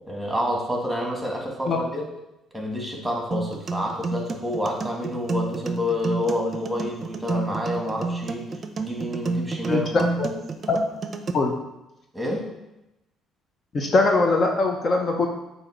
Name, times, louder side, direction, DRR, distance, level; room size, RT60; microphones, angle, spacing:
voice 1, 0.1-2.1 2.5-8.5 8.8-10.1 12.1-12.5, left 1 dB, 10° right, 0 dB, 1.7 m, -28 dB
sound 1, 3.3-11.3, right 3 dB, 40° right, 0.6 m, -30 dB
voice 2, 13.7-15.3, left 3 dB, 40° left, 2 dB, 0.7 m, -21 dB
7.6 x 2.8 x 4.5 m, 0.92 s
supercardioid pair, 80°, 0 cm